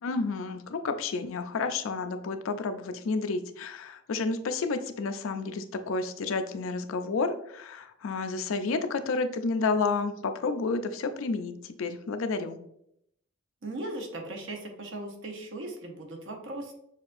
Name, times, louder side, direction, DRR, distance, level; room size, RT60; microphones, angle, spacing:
voice 1, 0.0-12.6, left 4 dB, 75° left, 8 dB, 0.4 m, -30 dB
voice 2, 13.6-16.7, right 2 dB, 65° right, 2 dB, 0.9 m, -38 dB
6.6 x 2.5 x 2.5 m, 0.75 s
head